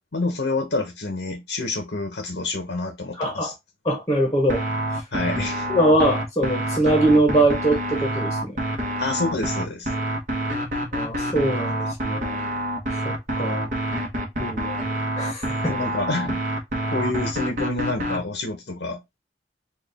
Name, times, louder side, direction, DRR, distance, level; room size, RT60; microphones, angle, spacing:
voice 1, 0.1-3.5 5.1-5.7 9.0-9.9 15.7-16.4 16.9-19.0, left 3 dB, 85° left, 0.8 m, -28 dB
voice 2, 3.2-3.5 3.8-4.6 4.9-5.0 5.7-8.6 10.9-12.5 13.0-13.7 14.4-14.8 15.2-15.7, right 1 dB, 20° left, 0.9 m, -22 dB
sound 1, 4.5-18.2, right 1 dB, 45° right, 1.1 m, -27 dB
4.1 x 2.4 x 3.4 m
head